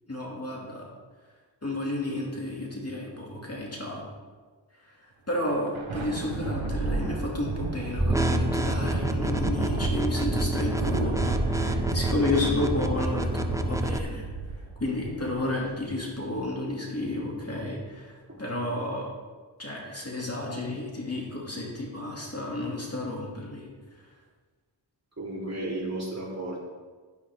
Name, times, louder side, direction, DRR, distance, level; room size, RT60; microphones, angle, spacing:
voice 1, 0.1-0.8 1.6-4.1 5.3-14.3 14.8-19.1 19.6-23.7, left 2 dB, 30° left, -3 dB, 2.5 m, -31 dB
Thunder, 5.3-16.1, right 3 dB, 85° right, 1.4 m, -33 dB
sound 1, 8.0-14.0, right 1 dB, 5° right, 0.8 m, -28 dB
voice 2, 25.2-26.6, right 2 dB, 35° right, -5 dB, 3.6 m, -33 dB
11.0 x 10.5 x 3.6 m, 1.4 s
wide cardioid pair, 65°, 46 cm